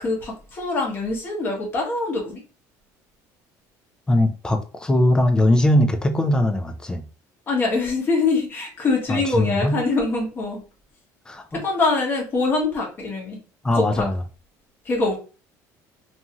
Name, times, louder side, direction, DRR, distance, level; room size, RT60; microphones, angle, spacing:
voice 1, 0.0-2.4 7.5-10.6 11.5-13.4 13.8-14.0 14.8-15.2, left 3 dB, 30° left, 1.0 m, -24 dB
voice 2, 4.1-7.1 9.1-9.8 11.3-11.6 13.6-14.2, left 1 dB, 10° left, 0.3 m, -20 dB
2.6 x 2.4 x 2.8 m
cardioid pair, 155°, 7 cm